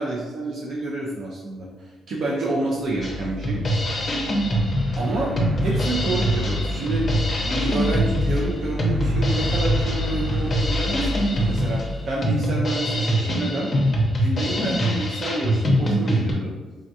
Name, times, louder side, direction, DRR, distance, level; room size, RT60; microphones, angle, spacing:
voice 1, 0.0-3.6 5.0-7.0 7.4-13.7 14.2-16.5, right 2 dB, 60° right, -4 dB, 0.5 m, -28 dB
sound 1, 2.8-13.0, left 2 dB, 35° right, 0.9 m, -30 dB
Drum kit, 3.0-16.3, equal, 35° left, 0.6 m, -24 dB
3.4 x 2.3 x 2.7 m, 1.2 s
cardioid pair, 105°, 0 cm